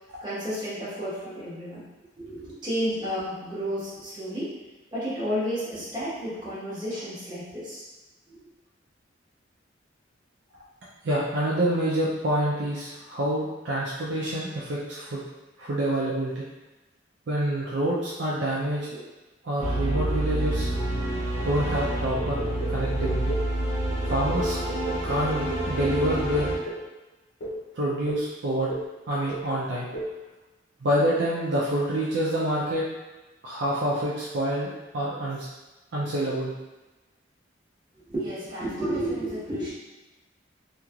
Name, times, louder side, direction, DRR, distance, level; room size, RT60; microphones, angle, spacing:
voice 1, 0.2-1.8 2.2-7.9 8.3-8.4 38.0-39.7, equal, 25° right, -10 dB, 1.2 m, -31 dB
voice 2, 11.0-15.2 15.6-16.5 17.3-19.0 19.4-20.7 21.4-22.4 22.7-23.4 24.0-24.6 25.0-26.5 27.7-28.7 29.1-29.9 30.8-32.8 33.4-35.5 35.9-36.5, right 1 dB, 65° right, -6 dB, 0.5 m, -27 dB
sound 1, 19.6-26.6, right 1 dB, 40° right, 0.8 m, -28 dB
sound 2, 22.1-23.6 24.1-26.9 27.4-27.6 28.1-28.3 28.7-29.0 29.3-29.6 29.9-30.2, right 1 dB, 70° left, 0.6 m, -34 dB
3.0 x 2.8 x 2.4 m, 1.1 s
head